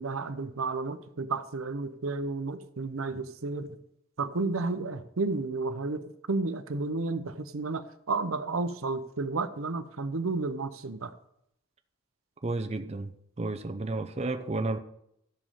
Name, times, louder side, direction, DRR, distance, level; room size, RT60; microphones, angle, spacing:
voice 1, 0.0-3.8 4.2-11.1, right 3 dB, 80° right, 0.8 m, -32 dB
voice 2, 12.4-13.1 13.4-14.8, right 2 dB, 30° right, 0.6 m, -31 dB
14.0 x 5.1 x 5.6 m
head